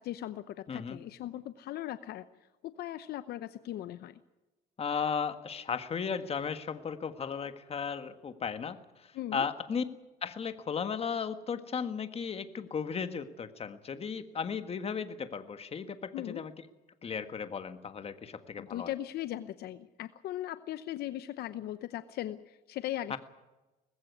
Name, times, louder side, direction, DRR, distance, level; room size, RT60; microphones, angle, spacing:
voice 1, 0.0-2.2 2.6-4.2 9.1-9.4 16.1-16.4 18.6-23.2, left 13 dB, 70° left, 13 dB, 0.8 m, -38 dB
voice 2, 0.7-1.0 4.8-8.8 9.3-9.8 10.2-16.5 17.0-18.9 23.1-23.2, left 6 dB, 35° left, 10 dB, 1.6 m, -35 dB
20.0 x 15.5 x 9.6 m, 1.1 s
cardioid pair, 110°, 17 cm